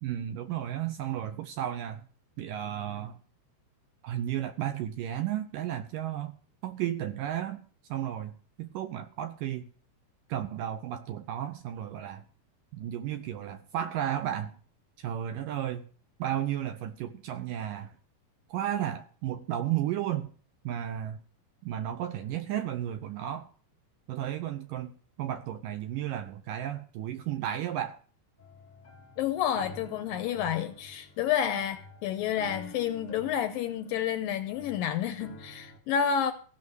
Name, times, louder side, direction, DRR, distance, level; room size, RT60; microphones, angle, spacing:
voice 1, 0.0-2.0 2.4-3.2 4.0-6.3 6.6-7.6 7.9-9.7 10.3-12.2 12.7-14.6 15.0-15.8 16.2-17.9 18.5-20.3 20.6-21.2 21.6-23.5 24.1-24.9 25.2-28.0, right 11 dB, 75° right, 2.0 m, -33 dB
sound 1, 28.4-35.8, left 1 dB, 25° left, 0.9 m, -50 dB
voice 2, 29.2-36.3, left 9 dB, 80° left, 2.1 m, -30 dB
16.0 x 6.0 x 7.9 m
omnidirectional pair, 4.6 m